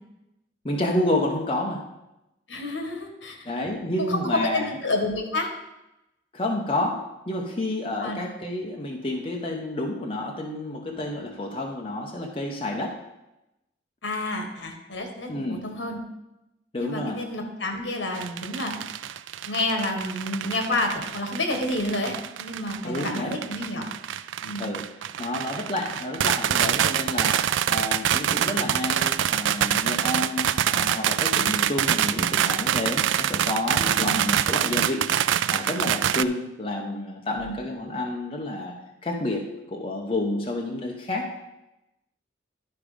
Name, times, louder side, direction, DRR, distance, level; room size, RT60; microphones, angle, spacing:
voice 1, 0.6-1.8 3.4-4.7 6.3-13.0 15.3-15.7 16.7-17.2 22.8-23.4 24.6-24.8 25.2-35.1 35.5-38.8 39.0-41.3, left 1 dB, 30° left, 0 dB, 0.9 m, -29 dB
voice 2, 2.5-3.5 4.0-5.5 8.0-8.2 14.0-16.0 16.8-18.7 19.4-22.1 22.4-23.9 24.4-24.7 34.0-34.2 37.3-37.6, left 2 dB, 70° left, 3 dB, 1.6 m, -29 dB
sound 1, 18.1-36.2, right 10 dB, 80° right, 0.3 m, -25 dB
11.5 x 5.0 x 5.1 m, 0.92 s
head